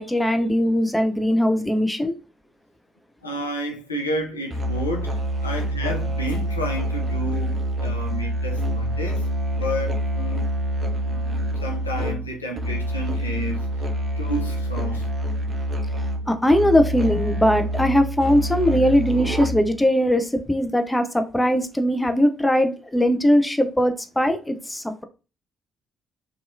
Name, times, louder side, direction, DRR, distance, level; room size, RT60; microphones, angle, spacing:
voice 1, 0.0-2.1 16.3-25.0, equal, 10° left, 0.5 m, -20 dB
voice 2, 3.2-9.3 9.5-10.5 11.0-13.9 14.2-15.1, equal, 90° left, 0.4 m, -31 dB
Musical instrument, 4.5-19.8, equal, 45° right, 0.5 m, -26 dB
2.7 x 2.3 x 2.5 m
figure-of-eight pair, 45°, 0 cm